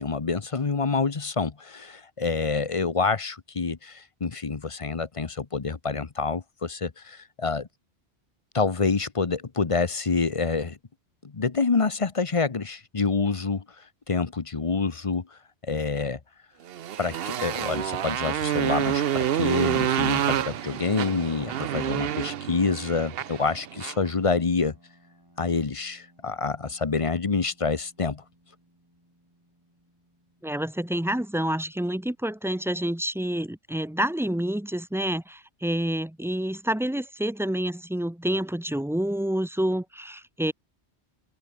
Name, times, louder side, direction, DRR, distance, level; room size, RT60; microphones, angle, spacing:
voice 1, 0.0-7.7 8.5-10.8 11.3-13.6 14.1-15.3 15.7-16.2 17.0-24.7 25.4-28.2, left 4 dB, 30° left, 0.9 m, -27 dB
Motorcycle, 16.7-24.1, right 10 dB, 65° right, 0.9 m, -28 dB
sound 1, 20.5-32.4, right 1 dB, 20° right, 5.2 m, -60 dB
voice 2, 30.4-40.5, right 1 dB, 5° right, 0.5 m, -28 dB
open air
omnidirectional pair, 1.1 m